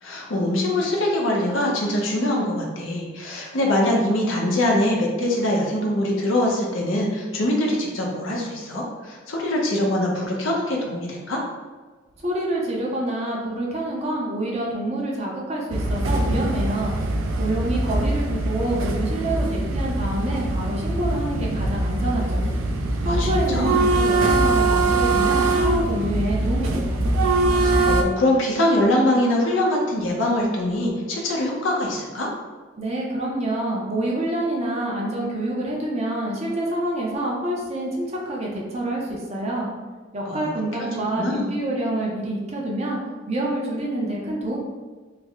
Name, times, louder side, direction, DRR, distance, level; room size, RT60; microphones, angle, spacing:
voice 1, 0.0-11.4 23.0-23.8 27.5-32.3 40.2-40.5 40.8-41.5, left 1 dB, 80° left, -2 dB, 0.7 m, -23 dB
voice 2, 12.2-16.9 17.4-22.4 23.0-27.0 32.8-39.7 40.1-43.0 43.3-44.6, right 1 dB, 35° right, -2 dB, 0.6 m, -27 dB
sound 1, 15.7-28.0, right 2 dB, 90° right, 0.4 m, -22 dB
3.3 x 2.1 x 3.5 m, 1.4 s
head